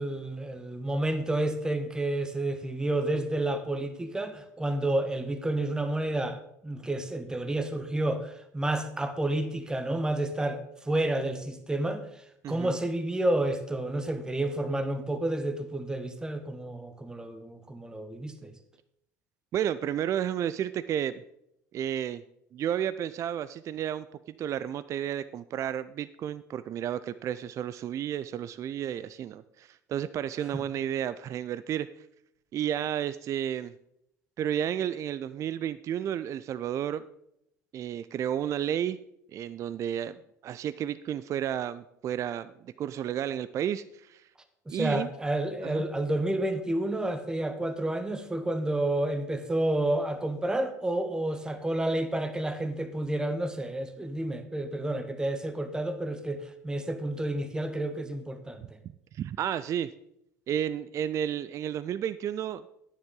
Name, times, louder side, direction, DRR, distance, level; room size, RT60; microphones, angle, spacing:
voice 1, 0.0-12.0 12.5-18.5 30.5-30.6 44.7-58.8, right 1 dB, 10° right, 9 dB, 0.9 m, -30 dB
voice 2, 12.4-12.8 19.5-21.2 21.7-22.2 22.5-24.1 24.4-31.9 32.5-33.7 34.4-37.1 37.7-39.0 39.3-44.2 44.7-45.1 45.6-45.8 59.1-59.9 60.5-62.6, right 10 dB, 35° right, 15 dB, 0.3 m, -32 dB
10.5 x 9.6 x 3.8 m, 0.77 s
figure-of-eight pair, 70°, 9 cm